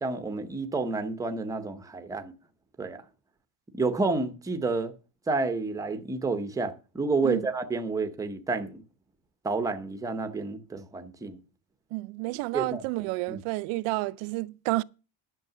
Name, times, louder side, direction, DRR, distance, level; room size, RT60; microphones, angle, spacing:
voice 1, 0.0-2.3 2.8-3.0 3.7-4.9 5.3-8.8 9.4-11.4 12.5-12.8 13.3-13.4, right 3 dB, 5° right, 0.6 m, -30 dB
voice 2, 11.9-14.8, right 21 dB, 85° right, 0.6 m, -30 dB
10.5 x 6.5 x 6.7 m
cardioid pair, 175°, 48 cm